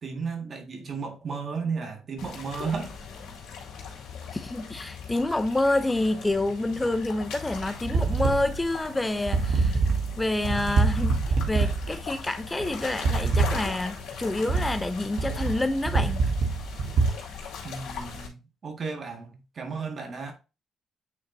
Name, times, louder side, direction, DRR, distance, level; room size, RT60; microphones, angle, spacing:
voice 1, 0.0-3.0 17.6-20.3, right 5 dB, 50° right, 1.7 m, -34 dB
sound 1, 2.2-18.3, left 6 dB, 85° left, 2.3 m, -40 dB
voice 2, 4.3-9.8 10.2-11.2 11.5-16.2, left 2 dB, 15° left, 0.5 m, -28 dB
sound 2, 7.5-17.1, right 4 dB, 65° right, 1.3 m, -25 dB
8.4 x 4.3 x 2.7 m
cardioid pair, 90°, 0 cm